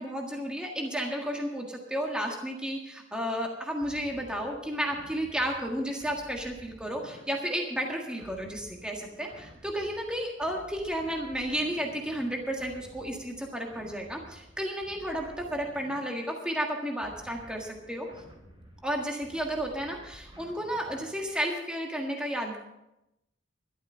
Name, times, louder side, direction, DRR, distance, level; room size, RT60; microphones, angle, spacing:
voice 1, 0.0-18.1 18.8-22.6, equal, 5° right, 0 dB, 1.6 m, -32 dB
sound 1, 3.8-21.4, equal, 30° right, 3.1 m, -53 dB
12.5 x 12.0 x 5.5 m, 0.89 s
head